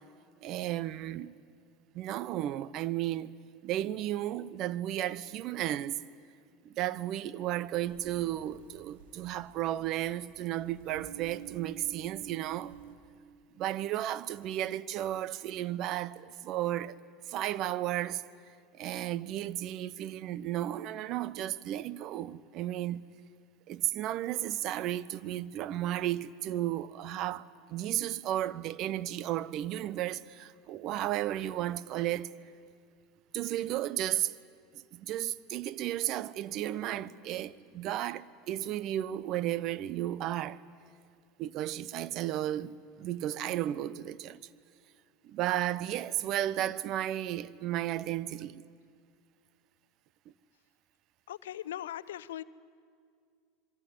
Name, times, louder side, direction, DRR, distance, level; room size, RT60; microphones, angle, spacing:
voice 1, 0.4-1.3 1.9-3.3 3.6-6.0 6.6-12.7 13.6-17.0 17.3-18.2 18.7-23.0 23.7-32.3 33.3-34.3 34.9-40.6 41.4-44.4 45.2-48.6, right 13 dB, 50° right, 0.8 m, -34 dB
sound 1, 7.8-12.9, right 10 dB, 70° right, 3.8 m, -50 dB
voice 2, 51.3-52.4, left 12 dB, 75° left, 0.7 m, -39 dB
26.5 x 22.5 x 9.6 m
hypercardioid pair, 80°, 0 cm